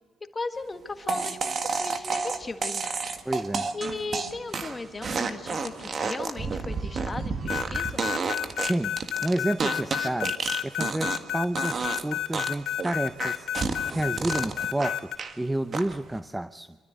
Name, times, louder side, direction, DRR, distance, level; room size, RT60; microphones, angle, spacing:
voice 1, 0.3-2.9 3.7-8.0, left 3 dB, 25° left, 7 dB, 1.7 m, -37 dB
sound 1, 1.1-11.3 11.6-12.0 12.3-15.4 15.7-16.2, right 4 dB, 45° right, 1.7 m, -30 dB
voice 2, 3.3-3.7 8.7-9.0 9.2-10.3 10.6-16.8, right 1 dB, 10° right, 13 dB, 0.6 m, -30 dB
sound 2, 7.5-15.2, left 11 dB, 65° left, 3.2 m, -30 dB
25.0 x 13.0 x 8.1 m, 1.5 s
cardioid pair, 90°, 0 cm